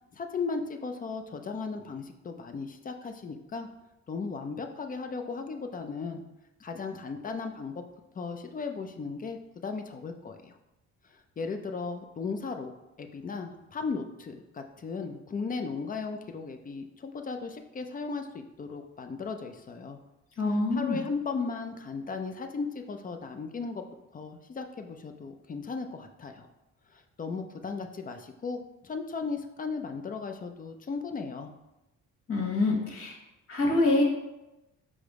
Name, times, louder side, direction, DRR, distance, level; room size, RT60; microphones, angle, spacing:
voice 1, 0.1-3.7 4.1-6.2 6.6-7.8 8.2-10.6 11.4-12.7 13.0-18.3 18.6-20.0 20.7-23.8 24.1-26.5 26.9-31.5, left 4 dB, 30° left, 6 dB, 0.5 m, -36 dB
voice 2, 20.4-21.0 32.3-33.1 33.5-34.0, left 2 dB, 45° left, 0 dB, 1.3 m, -25 dB
4.8 x 2.1 x 4.7 m, 0.96 s
cardioid pair, 90°, 31 cm